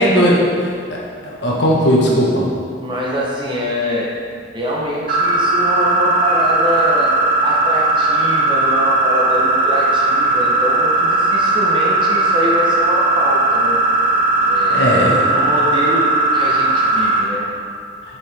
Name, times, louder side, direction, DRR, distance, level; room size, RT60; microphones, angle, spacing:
voice 1, 0.0-2.5 14.7-15.2, equal, 70° left, -4 dB, 1.5 m, -17 dB
voice 2, 2.8-4.1 4.5-7.1 7.4-13.8 14.5-16.0 16.3-17.5, equal, 25° right, -4 dB, 1.0 m, -23 dB
sound 1, 5.1-17.2, right 2 dB, 45° right, 1.1 m, -17 dB
7.8 x 6.2 x 3.5 m, 2.2 s
head